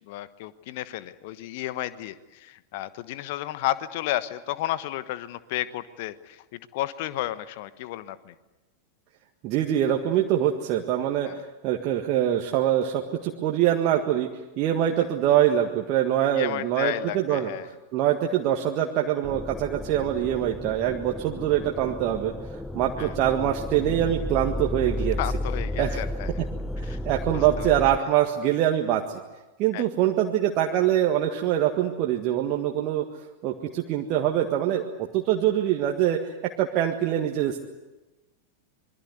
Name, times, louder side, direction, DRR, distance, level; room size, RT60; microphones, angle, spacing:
voice 1, 0.1-8.3 11.2-11.4 15.0-15.1 16.3-17.7 23.0-23.1 25.2-26.3 26.8-27.0 27.3-27.7 29.7-29.8, left 14 dB, 50° left, 15 dB, 1.2 m, -32 dB
voice 2, 9.4-14.3 14.6-17.5 17.9-22.3 22.7-25.2 25.8-26.0 26.8-29.2 29.6-33.1 33.4-37.6, right 11 dB, 40° right, 1 dB, 1.7 m, -24 dB
sound 1, 19.2-28.0, left 1 dB, 5° left, 0.8 m, -33 dB
26.5 x 22.5 x 8.0 m, 1.1 s
figure-of-eight pair, 90°, 0 cm